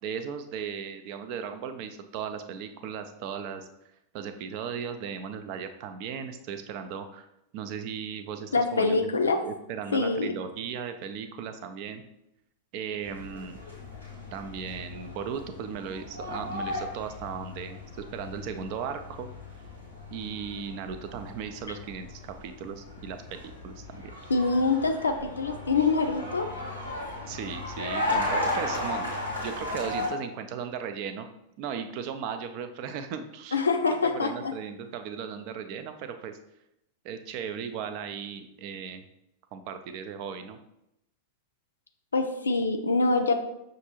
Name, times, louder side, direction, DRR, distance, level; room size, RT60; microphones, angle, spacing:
voice 1, 0.0-3.7 4.1-7.2 7.5-9.1 9.4-12.0 12.7-13.6 14.3-19.3 20.1-24.1 27.3-31.3 31.6-36.4 37.0-39.0 39.5-40.6, right 7 dB, 45° right, 8 dB, 0.4 m, -37 dB
voice 2, 8.5-9.4 9.9-10.3 24.3-26.5 33.5-34.5 42.1-43.3, left 3 dB, 75° left, 5 dB, 0.4 m, -25 dB
sound 1, 13.0-30.1, left 2 dB, 80° right, 1.4 m, -36 dB
6.0 x 2.5 x 2.8 m, 0.83 s
figure-of-eight pair, 90°, 0 cm